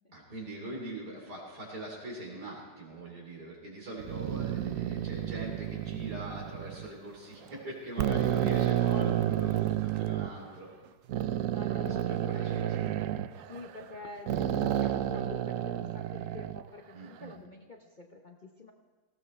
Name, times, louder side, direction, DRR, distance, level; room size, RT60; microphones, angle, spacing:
voice 1, 0.1-10.7 11.7-12.8 16.9-17.4, right 1 dB, 85° right, -2 dB, 3.9 m, -42 dB
sound 1, 4.0-6.9 7.5-7.6 8.0-10.3 11.1-13.9 14.3-16.6, right 12 dB, 70° right, 0.8 m, -30 dB
voice 2, 8.7-9.1 11.5-18.7, left 3 dB, 40° left, 2 dB, 0.7 m, -47 dB
18.5 x 15.5 x 3.2 m, 1.4 s
omnidirectional pair, 1.7 m